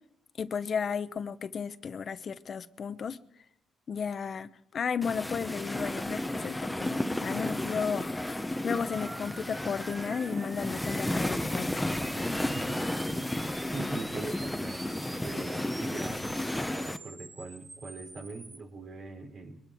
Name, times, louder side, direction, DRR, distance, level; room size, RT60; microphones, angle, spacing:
voice 1, 0.4-3.2 3.9-11.8, left 6 dB, 50° left, 12 dB, 0.8 m, -34 dB
sound 1, 5.0-17.0, left 1 dB, 5° left, 0.9 m, -33 dB
sound 2, 8.7-18.6, right 3 dB, 35° right, 5.1 m, -48 dB
voice 2, 12.1-13.3 13.7-16.3 16.7-19.6, right 3 dB, 60° right, 1 dB, 4.5 m, -42 dB
23.0 x 12.0 x 4.5 m, 0.80 s
cardioid pair, 90°, 0 cm